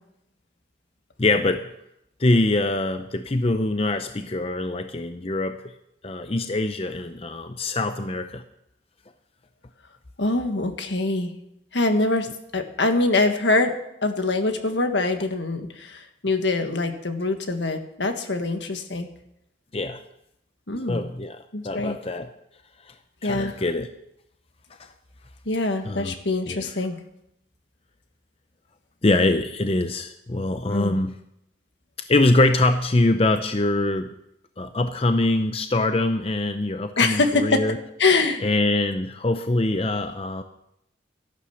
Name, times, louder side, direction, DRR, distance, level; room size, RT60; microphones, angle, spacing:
voice 1, 1.2-1.7 2.2-5.7 6.0-8.4 19.7-20.0 20.9-22.3 23.2-23.9 24.8-24.9 25.9-26.1 26.5-26.6 29.0-31.2 32.1-34.1 34.6-37.8 38.4-40.4, left 2 dB, 30° left, 8 dB, 0.6 m, -23 dB
voice 2, 10.2-11.3 11.7-12.3 12.5-13.7 14.0-19.1 20.7-21.1 21.5-22.0 23.2-23.6 25.5-27.0 30.7-31.0 37.0-37.6 38.0-38.4, left 3 dB, 75° left, 6 dB, 1.6 m, -24 dB
13.5 x 11.5 x 7.1 m, 0.81 s
head